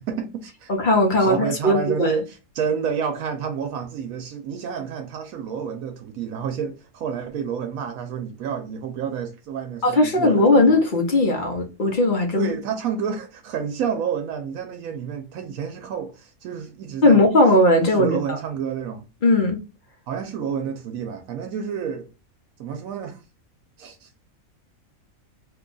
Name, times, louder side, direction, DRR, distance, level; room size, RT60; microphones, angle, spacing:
voice 1, 0.1-0.7 1.2-10.8 12.3-17.2 18.0-19.0 20.1-22.1 22.6-23.2 23.8-24.1, right 7 dB, 80° right, 1.0 m, -29 dB
voice 2, 0.7-2.1 9.8-12.5 17.0-18.1 19.2-19.6, left 2 dB, 45° left, 0.7 m, -18 dB
2.8 x 2.3 x 3.8 m
omnidirectional pair, 1.5 m